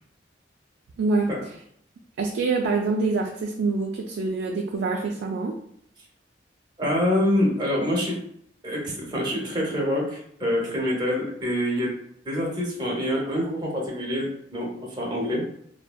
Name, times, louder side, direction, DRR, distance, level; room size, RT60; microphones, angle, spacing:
voice 1, 1.0-1.3 2.2-5.5, right 3 dB, 75° right, 0 dB, 0.3 m, -25 dB
voice 2, 6.8-8.2 8.6-11.9 12.2-15.4, left 1 dB, 25° right, -3 dB, 0.7 m, -26 dB
3.4 x 2.0 x 2.2 m, 0.68 s
head